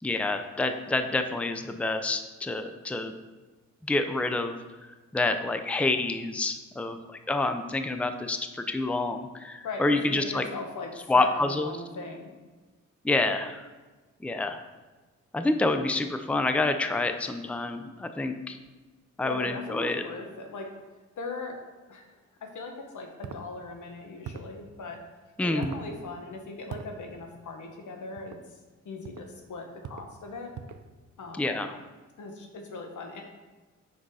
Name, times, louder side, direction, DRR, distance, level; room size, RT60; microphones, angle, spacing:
voice 1, 0.0-3.1 3.8-4.5 5.1-10.5 11.1-11.7 13.0-13.6 14.2-14.6 15.3-18.6 19.2-20.0 25.4-25.7 31.4-31.8, left 2 dB, 5° left, 7 dB, 0.5 m, -28 dB
voice 2, 9.6-12.3 19.2-20.7 21.2-21.6 21.9-25.0 25.4-28.4 28.8-30.5 31.2-31.5 32.2-33.2, left 3 dB, 80° left, 3 dB, 1.2 m, -39 dB
sound 1, 23.2-23.5 24.2-24.6 25.6-25.9 26.7-26.9 28.2-28.4 29.0-29.3 29.8-30.1 30.5-30.9, right 7 dB, 75° right, 0.6 m, -40 dB
6.3 x 5.5 x 4.8 m, 1.3 s
cardioid pair, 85°, 30 cm